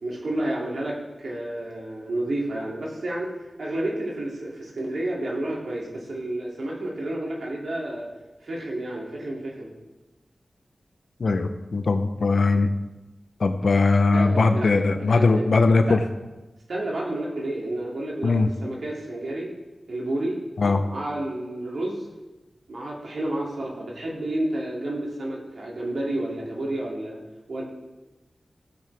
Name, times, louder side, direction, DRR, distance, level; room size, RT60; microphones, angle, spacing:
voice 1, 0.0-3.3 3.6-8.1 8.4-9.7 14.1-14.9 15.1-15.4 15.9-16.0 16.7-19.5 19.9-20.4 20.8-22.1 22.7-27.2 27.5-27.6, right 1 dB, 80° right, -3 dB, 2.7 m, -30 dB
voice 2, 11.2-12.7 13.4-16.0 18.2-18.5 20.6-20.8, left 3 dB, 75° left, 7 dB, 0.8 m, -20 dB
15.5 x 7.8 x 3.5 m, 1.1 s
wide cardioid pair, 70°, 0 cm